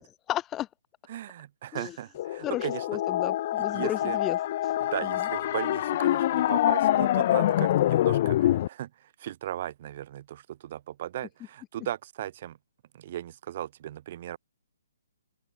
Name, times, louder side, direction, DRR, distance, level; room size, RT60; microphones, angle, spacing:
voice 1, 0.3-0.7 1.7-1.9 2.4-4.4, left 13 dB, 15° left, 1.3 m, -33 dB
voice 2, 1.1-3.0 3.7-4.2 4.8-12.6 12.9-14.4, right 12 dB, 40° right, 6.8 m, -37 dB
sound 1, 2.2-8.7, left 13 dB, 40° left, 1.8 m, -25 dB
open air
hypercardioid pair, 160°, 0 cm